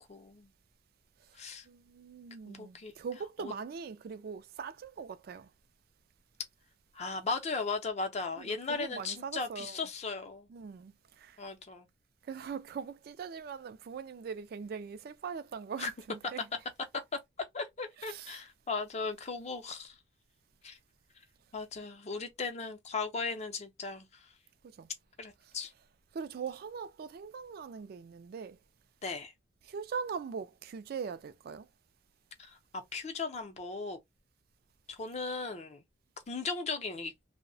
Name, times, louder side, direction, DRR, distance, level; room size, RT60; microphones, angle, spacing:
voice 1, 0.1-0.5 1.3-1.7 2.5-2.9 3.4-3.5 6.9-10.5 11.4-11.9 15.8-15.9 17.5-20.0 20.6-20.8 21.5-24.3 25.2-25.7 29.0-29.3 32.4-32.6 32.9-34.0 34.9-35.8 36.3-37.1, left 4 dB, 35° left, 0.5 m, -37 dB
voice 2, 1.7-5.5 8.4-9.9 10.5-11.4 12.2-16.5 16.9-17.0 18.0-18.5 24.6-24.9 25.4-25.6 26.1-28.6 29.6-31.7, right 6 dB, 55° right, 0.3 m, -41 dB
2.7 x 2.0 x 2.6 m
head